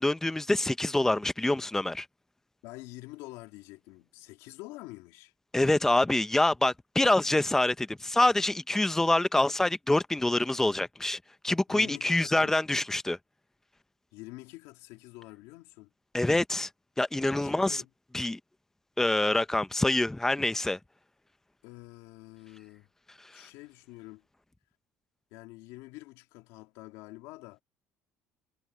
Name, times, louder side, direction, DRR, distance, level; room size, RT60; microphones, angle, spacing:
voice 1, 0.0-2.1 5.5-11.2 11.4-13.2 16.1-16.7 17.0-17.8 18.1-18.4 19.0-20.8, left 2 dB, 10° left, 0.8 m, -26 dB
voice 2, 2.6-5.3 11.7-12.5 14.1-15.9 17.4-17.9 21.6-22.9 23.3-24.2 25.3-27.6, left 20 dB, 85° left, 2.8 m, -47 dB
supercardioid pair, 95°, 5 cm